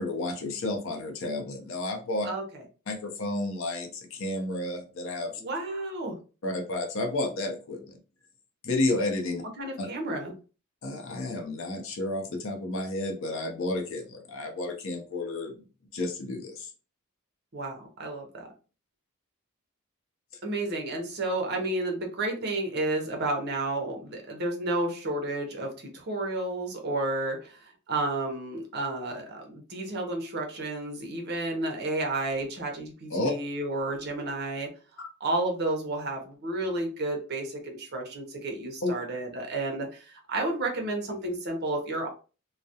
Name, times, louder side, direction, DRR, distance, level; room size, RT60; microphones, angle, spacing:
voice 1, 0.0-2.3 2.9-5.4 6.4-7.9 8.6-9.4 9.8-9.9 10.8-15.6 15.9-16.7 33.1-33.3 38.8-38.9, left 2 dB, 60° left, 3 dB, 0.6 m, -31 dB
voice 2, 2.2-2.6 5.4-6.2 9.6-10.3 17.5-18.5 20.4-34.7 35.2-42.1, right 2 dB, 50° right, 2 dB, 0.6 m, -31 dB
2.3 x 2.0 x 2.7 m, 0.34 s
head